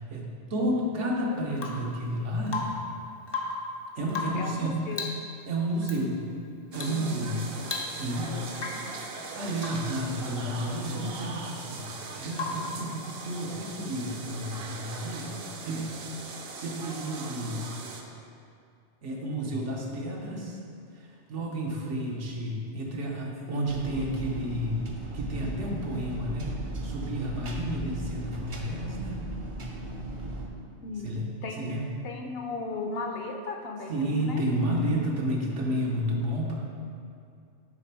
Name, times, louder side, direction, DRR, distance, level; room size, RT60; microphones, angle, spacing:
voice 1, 0.0-2.7 3.9-4.8 5.5-6.3 6.7-7.4 8.0-8.4 9.2-11.8 12.1-15.3 15.6-15.9 16.5-17.6 19.0-20.6 21.0-24.8 25.1-29.3 31.0-31.2 31.6-31.8 33.9-36.5, right 1 dB, 80° right, -2 dB, 1.2 m, -31 dB
Rain / Water tap faucet / Drip, 1.5-1.9 2.5-2.9 3.2-3.7 4.1-4.5 4.9-5.3 5.8-6.0 6.7-7.0 7.3-7.4 7.6-8.2 8.5-8.9 9.6-9.9 12.3-12.8 14.7-14.8, left 3 dB, 35° left, 0.4 m, -35 dB
voice 2, 4.3-5.1 6.9-7.3 8.2-8.4 8.7-9.0 30.8-31.1 31.4-31.7 32.0-34.4, left 3 dB, 65° left, 3 dB, 0.7 m, -36 dB
sound 1, 6.7-18.0, right 4 dB, 60° right, 0.8 m, -40 dB
sound 2, 23.7-30.5, right 2 dB, 40° right, 0.5 m, -37 dB
7.5 x 3.3 x 4.4 m, 2.4 s
omnidirectional pair, 1.2 m